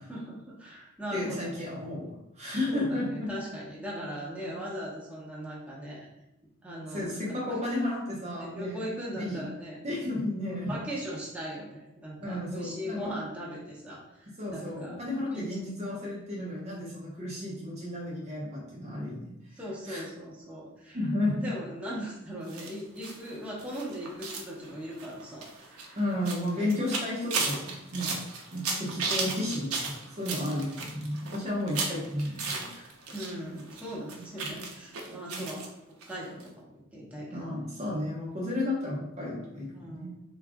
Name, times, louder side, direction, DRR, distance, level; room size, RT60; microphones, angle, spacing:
voice 1, 0.1-1.7 2.7-6.1 6.6-7.4 8.4-9.8 10.4-15.5 19.3-21.0 21.4-26.0 26.6-26.7 33.1-35.7 36.1-37.4 39.7-40.2, equal, 5° right, -6 dB, 1.0 m, -39 dB
voice 2, 1.1-3.3 6.9-8.8 9.1-9.4 9.8-10.8 12.2-13.1 14.4-19.6 19.9-20.0 20.9-21.5 25.9-28.2 28.5-32.9 34.2-34.3 35.3-35.5 37.3-40.1, left 1 dB, 30° right, -5 dB, 0.8 m, -33 dB
sound 1, 22.5-33.3 33.6-35.7 36.0-36.1 36.4-36.5, right 4 dB, 85° right, 0.7 m, -35 dB
3.9 x 2.5 x 3.5 m, 0.87 s
head